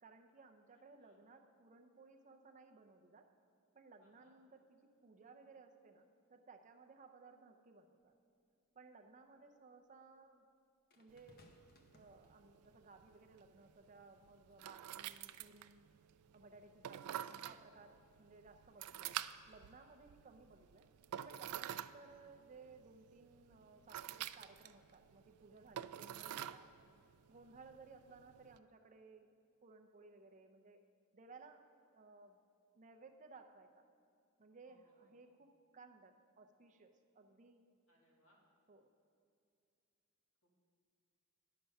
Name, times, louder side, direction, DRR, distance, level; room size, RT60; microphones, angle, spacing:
voice 1, 0.0-3.3 3.7-8.1 8.7-10.4 11.0-11.4 11.9-15.9 16.3-20.9 21.2-26.7 27.3-29.3 29.6-30.8 31.1-31.6 31.9-32.4 32.7-33.9 34.4-37.6 38.7-38.9, right 4 dB, 35° right, 5 dB, 0.5 m, -60 dB
voice 2, 4.0-4.3 14.9-15.2 34.6-35.3 37.9-38.4 40.4-40.5, equal, 65° left, -3 dB, 2.3 m, -74 dB
sound 1, 8.0-8.1 10.9-12.8 13.7-13.9, left 1 dB, 45° left, 0.8 m, -67 dB
sound 2, 11.1-28.6, right 11 dB, 85° right, 0.3 m, -49 dB
10.0 x 6.7 x 5.4 m, 2.5 s
head